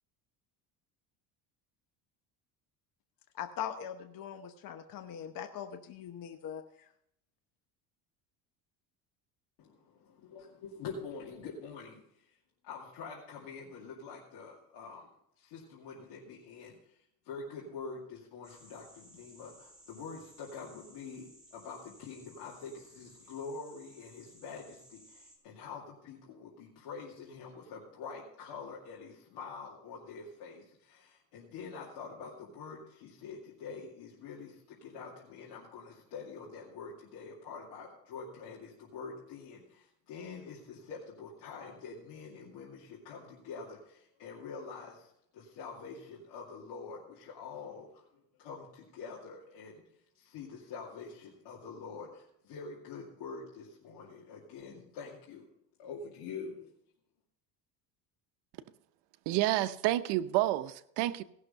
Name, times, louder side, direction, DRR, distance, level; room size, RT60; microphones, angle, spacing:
voice 1, 3.4-6.6, left 9 dB, 55° left, 1.0 m, -41 dB
voice 2, 9.6-12.3 12.6-15.1 15.4-17.0 17.2-48.0 48.4-49.8 50.1-55.5 55.8-56.7, left 5 dB, 80° left, 2.4 m, -46 dB
sound 1, 18.4-25.4, right 1 dB, ahead, 3.3 m, -59 dB
voice 3, 59.3-61.2, right 15 dB, 80° right, 0.8 m, -29 dB
17.0 x 6.5 x 5.5 m
cardioid pair, 120°, 41 cm